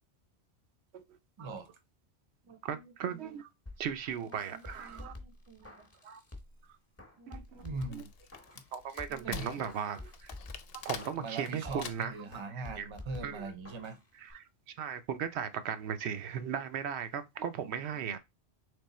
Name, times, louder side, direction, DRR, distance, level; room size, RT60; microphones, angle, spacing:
voice 1, 1.4-1.7 2.4-3.3 4.2-5.9 7.2-8.1 9.1-9.5 11.2-14.0 17.6-17.8, right 3 dB, 30° right, 0.7 m, -43 dB
voice 2, 2.6-3.5 3.8-5.1 6.0-6.2 7.3-7.6 7.9-8.0 8.7-10.3 10.8-12.2 12.8-12.9 13.2-13.5 14.1-14.4 14.8-18.2, right 8 dB, 80° right, 0.8 m, -37 dB
sound 1, 3.7-6.6 7.0-8.7 9.0-12.0 12.3-14.0 14.3-14.4, left 2 dB, 15° left, 0.8 m, -49 dB
Wood, 7.6-12.3, left 8 dB, 70° left, 0.8 m, -46 dB
3.6 x 3.3 x 4.1 m
omnidirectional pair, 1.1 m